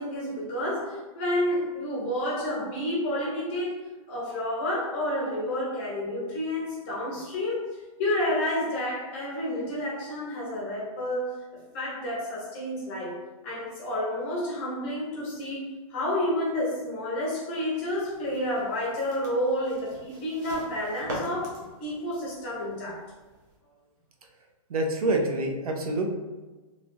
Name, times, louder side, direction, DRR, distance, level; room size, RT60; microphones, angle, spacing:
voice 1, 0.0-3.8 4.1-7.7 8.0-11.3 11.7-13.2 13.4-23.0, left 1 dB, 20° left, -5 dB, 0.7 m, -30 dB
sound 1, 17.7-23.6, equal, 30° right, 0.6 m, -43 dB
voice 2, 24.7-26.1, right 2 dB, 85° right, 2 dB, 0.7 m, -26 dB
3.2 x 2.4 x 2.6 m, 1.2 s
hypercardioid pair, 175°, 18 cm